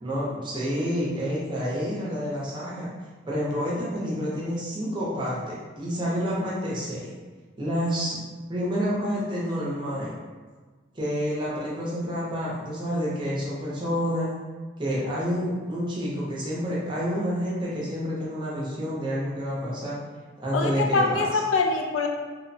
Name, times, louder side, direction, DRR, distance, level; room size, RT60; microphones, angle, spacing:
voice 1, 0.0-2.9 3.3-7.1 7.6-8.2 8.5-10.1 10.9-14.3 14.8-20.0 20.4-21.4, equal, 25° right, -6 dB, 0.6 m, -29 dB
voice 2, 20.5-22.1, left 3 dB, 90° left, 2 dB, 0.4 m, -24 dB
2.9 x 2.1 x 2.6 m, 1.4 s
head